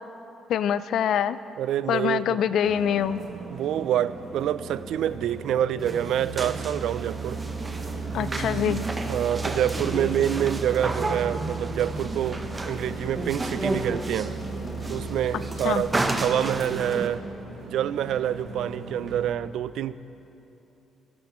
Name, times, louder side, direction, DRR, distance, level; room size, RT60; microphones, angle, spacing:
voice 1, 0.5-1.4 1.9-3.2 8.1-8.8 15.6-15.8, left 9 dB, 75° left, 15 dB, 0.4 m, -24 dB
voice 2, 1.6-2.4 3.5-7.4 8.3-8.8 9.0-14.3 14.9-17.2 17.6-19.9, right 10 dB, 80° right, 16 dB, 0.3 m, -27 dB
sound 1, 2.6-19.3, right 4 dB, 65° right, 1.7 m, -36 dB
sound 2, 5.8-17.1, right 2 dB, 25° right, 0.9 m, -32 dB
sound 3, 7.3-17.1, left 3 dB, 45° left, 1.4 m, -42 dB
25.0 x 9.5 x 3.1 m, 2.8 s
cardioid pair, 90°, 0 cm